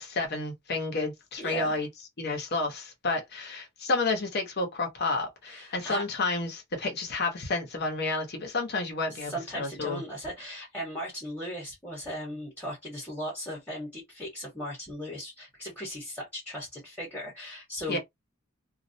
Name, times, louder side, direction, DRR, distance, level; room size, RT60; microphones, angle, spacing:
voice 1, 0.0-1.9 2.2-10.0 17.9-18.0, left 3 dB, 45° left, 0.8 m, -30 dB
voice 2, 1.4-1.8 5.4-6.0 9.1-18.0, equal, 5° left, 1.0 m, -37 dB
2.3 x 2.0 x 2.6 m
head